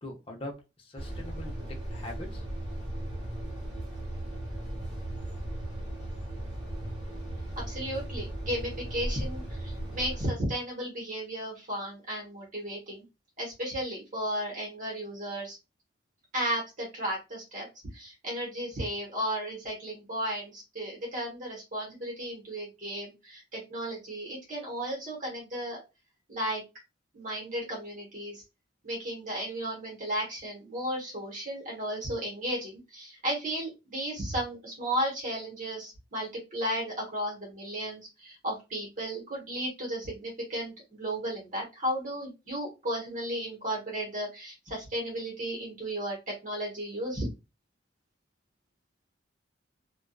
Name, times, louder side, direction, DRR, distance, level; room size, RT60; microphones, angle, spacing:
voice 1, 0.0-2.5, left 1 dB, 30° left, 0 dB, 0.6 m, -42 dB
sound 1, 1.0-10.3, right 1 dB, 20° right, 1.3 m, -37 dB
voice 2, 7.7-13.0 13.4-15.6 16.3-17.7 17.9-25.8 26.3-26.6 27.1-28.4 28.8-47.3, equal, 40° right, -2 dB, 1.0 m, -34 dB
2.5 x 2.2 x 2.2 m, 0.25 s
head